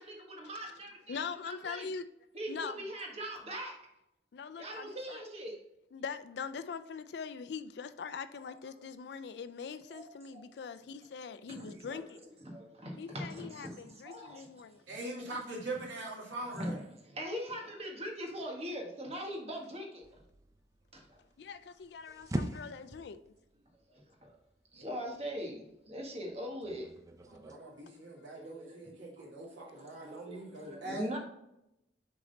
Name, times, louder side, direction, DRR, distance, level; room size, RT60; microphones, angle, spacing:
voice 1, 0.0-1.9 2.3-3.8 4.6-5.6 9.9-10.4 11.6-12.1 12.4-14.5 14.9-15.0 16.6-16.8 17.1-20.1 20.9-21.2 22.1-22.2 23.9-24.4 24.7-26.9 27.5-27.9 28.3-28.8 29.7-31.2, equal, 35° right, 1.5 m, -42 dB
voice 2, 1.1-2.0 2.5-2.8 4.3-5.2 5.9-12.2 13.0-14.8 21.4-23.2, left 6 dB, 65° left, 0.4 m, -42 dB
voice 3, 14.9-16.8 27.2-31.2, right 2 dB, 85° right, 2.3 m, -42 dB
sound 1, 20.0-27.6, right 1 dB, 20° right, 0.4 m, -44 dB
6.6 x 3.8 x 4.0 m
head